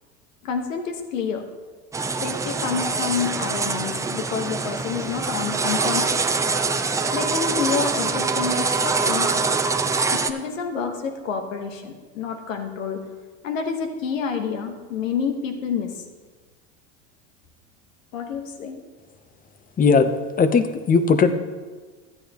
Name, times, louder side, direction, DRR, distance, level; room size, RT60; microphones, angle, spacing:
voice 1, 0.4-1.4 2.2-6.3 7.1-9.5 10.1-13.0 13.4-16.0 18.1-18.8, left 6 dB, 90° left, 5 dB, 1.4 m, -28 dB
sound 1, 1.9-10.3, right 4 dB, 10° right, 0.4 m, -24 dB
voice 2, 19.8-20.1 20.4-21.3, left 5 dB, 20° left, 10 dB, 0.8 m, -17 dB
13.5 x 9.6 x 3.0 m, 1.4 s
supercardioid pair, 105°, 38 cm